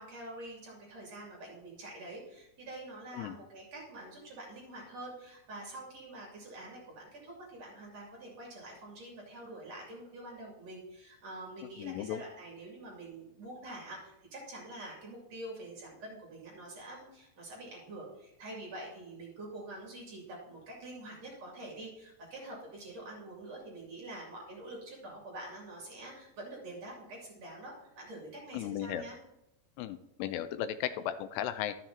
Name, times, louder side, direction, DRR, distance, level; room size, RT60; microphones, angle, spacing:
voice 1, 0.0-29.2, right 1 dB, 45° right, -3 dB, 3.2 m, -46 dB
voice 2, 11.8-12.2 28.5-29.0 29.8-31.7, left 11 dB, 85° left, 11 dB, 2.6 m, -35 dB
13.0 x 7.4 x 2.8 m, 0.88 s
omnidirectional pair, 4.8 m